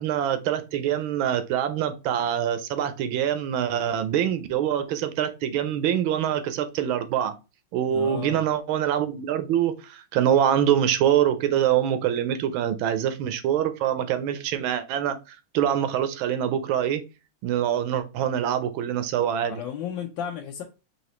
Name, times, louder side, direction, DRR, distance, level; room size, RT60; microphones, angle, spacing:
voice 1, 0.0-7.3 7.7-17.0 17.4-19.6, right 10 dB, 75° right, 1.3 m, -25 dB
voice 2, 7.9-8.4 19.5-20.6, left 8 dB, 70° left, 1.2 m, -33 dB
4.8 x 2.7 x 3.0 m
omnidirectional pair, 2.4 m